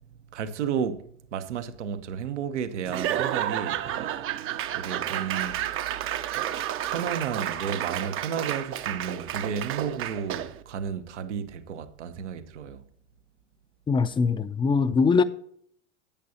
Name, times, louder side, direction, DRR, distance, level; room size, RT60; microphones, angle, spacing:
voice 1, 0.3-3.8 4.7-5.6 6.9-12.8, right 7 dB, 80° right, 1.0 m, -32 dB
Laughter / Applause / Crowd, 2.9-10.6, right 11 dB, 40° right, 0.7 m, -31 dB
voice 2, 13.9-15.2, left 5 dB, 15° left, 0.5 m, -22 dB
10.0 x 8.6 x 2.8 m
hypercardioid pair, 90°, 35 cm